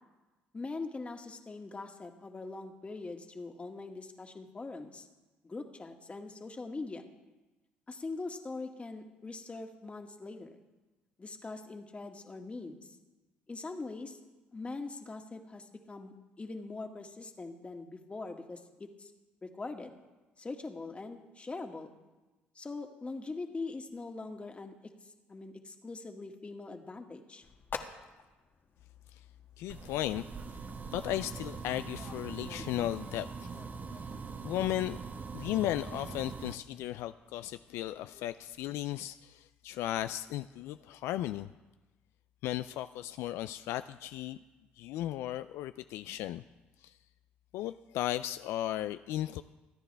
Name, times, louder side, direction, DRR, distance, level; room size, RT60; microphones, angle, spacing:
voice 1, 0.5-5.1 5.4-7.1 7.9-10.6 11.2-12.9 13.5-14.2 14.5-19.1 19.4-19.9 20.4-21.9 22.6-24.7 25.0-27.4, left 3 dB, 25° left, 4 dB, 1.9 m, -42 dB
sound 1, 27.4-38.7, left 5 dB, 50° left, 1.5 m, -51 dB
voice 2, 29.6-30.2 30.5-30.6 30.9-33.6 34.4-35.0 35.3-41.5 42.4-44.4 44.8-46.4 46.8-46.9 47.5-49.4, left 13 dB, 75° left, 11 dB, 0.4 m, -35 dB
sound 2, 29.7-36.5, right 5 dB, 40° right, 0.9 m, -42 dB
25.0 x 9.8 x 3.4 m, 1.2 s
supercardioid pair, 65°, 5 cm